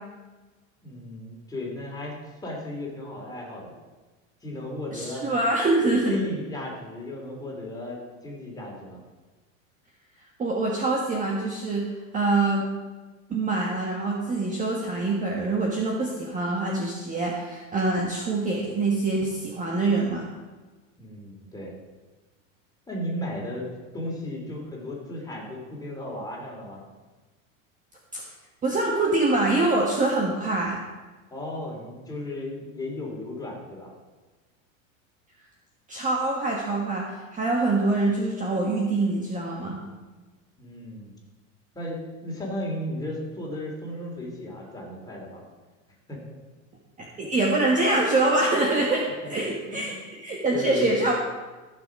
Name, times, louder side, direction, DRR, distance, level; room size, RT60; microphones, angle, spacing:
voice 1, 0.8-3.7 4.4-5.2 6.1-9.0 21.0-21.7 22.9-23.7 23.9-26.8 31.3-33.9 40.6-41.1 41.7-45.5 46.1-46.4 49.2-49.3 49.6-50.0 50.5-51.0, left 1 dB, 10° left, -3 dB, 3.5 m, -35 dB
voice 2, 4.9-6.1 10.4-11.8 12.1-12.7 13.3-20.3 28.1-28.2 28.6-30.8 35.9-39.8 47.0-51.1, right 2 dB, 20° right, -2 dB, 1.5 m, -25 dB
15.5 x 6.9 x 4.9 m, 1.2 s
supercardioid pair, 130°, 41 cm